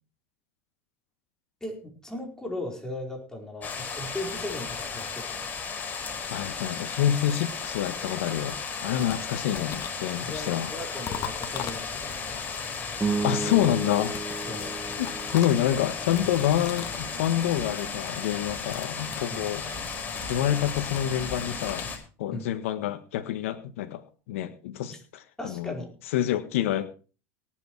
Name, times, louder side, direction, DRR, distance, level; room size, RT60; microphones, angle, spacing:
voice 1, 1.6-5.5 9.0-9.1 10.2-12.4 14.5-14.7 19.3-19.5 22.3-22.5 24.9-25.0 25.4-25.9, left 1 dB, 10° left, 1 dB, 4.6 m, -37 dB
sound 1, 3.6-22.0, left 5 dB, 25° left, 5.3 m, -35 dB
sound 2, 4.3-5.9 6.8-8.4 8.7-12.3 13.7-17.1 17.3-17.7 17.9-18.2 18.5-21.9, left 9 dB, 45° left, 2.1 m, -43 dB
voice 2, 6.3-10.7 13.2-14.2 15.0-19.7 20.3-21.9 22.2-25.7 26.1-26.9, left 11 dB, 80° left, 7 dB, 1.5 m, -27 dB
sound 3, 13.0-17.5, right 4 dB, 15° right, 1.3 m, -34 dB
18.0 x 8.2 x 4.7 m, 0.36 s
supercardioid pair, 105°, 7 cm